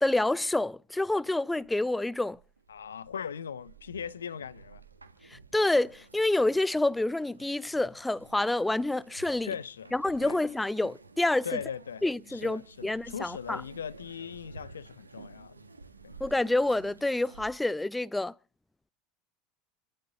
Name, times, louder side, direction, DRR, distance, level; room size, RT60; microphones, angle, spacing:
voice 1, 0.0-2.4 5.3-9.5 9.9-11.5 12.0-13.6 16.2-18.3, left 2 dB, 5° left, 0.7 m, -28 dB
sound 1, 1.5-17.5, right 4 dB, 80° right, 1.7 m, -52 dB
voice 2, 2.7-4.8 9.4-9.9 10.2-10.4 11.4-12.0 12.3-15.6 16.0-16.2, left 7 dB, 75° left, 0.7 m, -39 dB
29.0 x 12.0 x 3.9 m
figure-of-eight pair, 75°, 0 cm